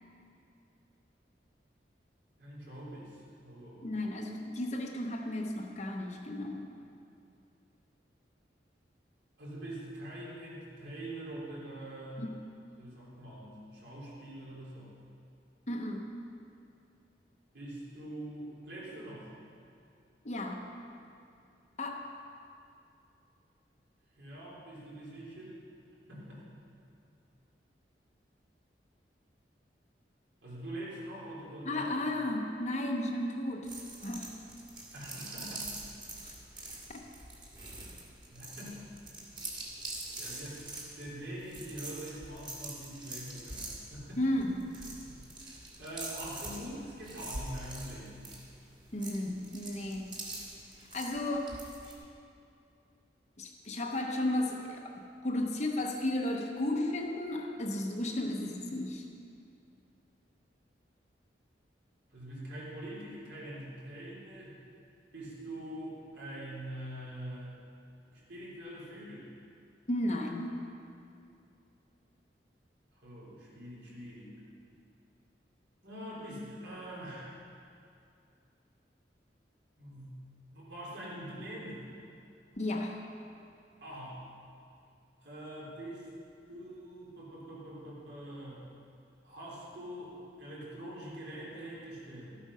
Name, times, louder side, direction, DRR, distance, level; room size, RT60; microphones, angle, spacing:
voice 1, 2.4-3.9 9.4-12.3 12.8-14.9 17.5-19.3 24.2-25.6 26.0-26.5 30.4-32.1 34.9-35.7 38.3-38.9 40.2-40.7 41.0-44.2 45.0-48.2 62.1-64.6 65.1-67.6 68.1-69.3 72.9-74.3 75.8-77.5 79.8-81.8 83.8-84.2 85.2-86.1 86.5-88.7 89.2-92.4, right 1 dB, 70° right, -6 dB, 3.5 m, -44 dB
voice 2, 3.8-6.7 12.2-12.4 15.7-16.1 20.2-20.7 21.8-22.1 31.6-33.7 34.0-34.3 36.2-36.3 44.2-44.7 48.9-50.2 50.9-51.6 53.4-59.1 69.9-70.6 82.6-83.0, left 1 dB, 40° left, 1 dB, 0.9 m, -34 dB
sound 1, 33.6-51.9, right 2 dB, 25° right, 1.9 m, -44 dB
13.5 x 8.3 x 5.6 m, 2.6 s
head